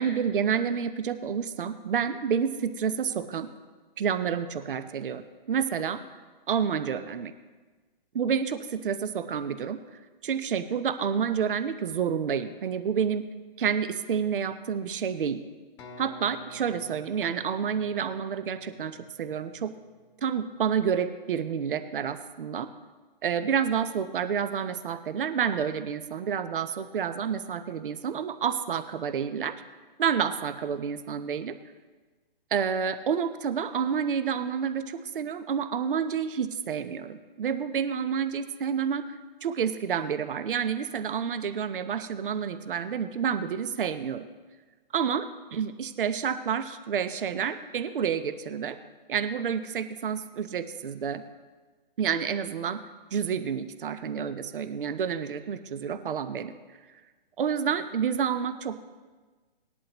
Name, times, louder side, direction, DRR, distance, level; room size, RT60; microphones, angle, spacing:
voice 1, 0.0-3.5 4.0-5.2 5.5-6.0 6.5-7.3 8.1-9.8 10.2-13.3 13.6-15.4 16.0-19.8 20.2-22.7 23.2-29.6 30.0-31.6 32.5-44.3 44.9-45.2 45.5-48.8 49.1-51.2 52.0-52.8 53.1-56.6 57.4-58.8, right 7 dB, 65° right, 11 dB, 0.8 m, -29 dB
sound 1, 15.8-19.6, left 1 dB, 15° left, 1.1 m, -50 dB
19.0 x 11.0 x 3.0 m, 1.3 s
hypercardioid pair, 145°, 29 cm